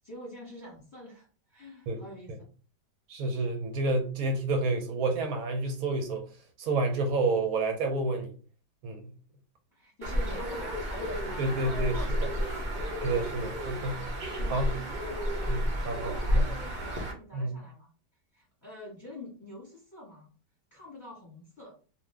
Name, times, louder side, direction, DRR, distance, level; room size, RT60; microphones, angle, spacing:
voice 1, 0.0-2.3 9.7-17.9 18.3-20.3 20.7-21.8, left 1 dB, 10° left, -6 dB, 1.0 m, -46 dB
voice 2, 3.1-6.3 6.6-8.3 8.8-9.1 11.4-12.0 13.0-14.0 14.5-14.7 15.5-15.6 15.8-16.5 17.3-17.5, right 2 dB, 70° right, 5 dB, 1.0 m, -29 dB
Bird, 10.0-17.1, equal, 85° right, 0.4 m, -31 dB
2.6 x 2.5 x 3.3 m, 0.38 s
omnidirectional pair, 1.8 m